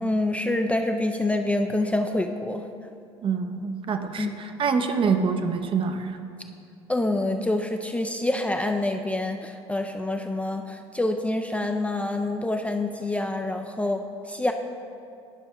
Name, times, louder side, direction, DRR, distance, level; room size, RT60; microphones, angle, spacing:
voice 1, 0.0-2.6 4.2-4.4 6.9-14.0 14.3-14.5, left 2 dB, 10° left, 4 dB, 0.4 m, -26 dB
voice 2, 3.2-6.2, right 5 dB, 35° right, 7 dB, 0.6 m, -26 dB
11.0 x 5.7 x 2.8 m, 2.5 s
figure-of-eight pair, 65°, 15 cm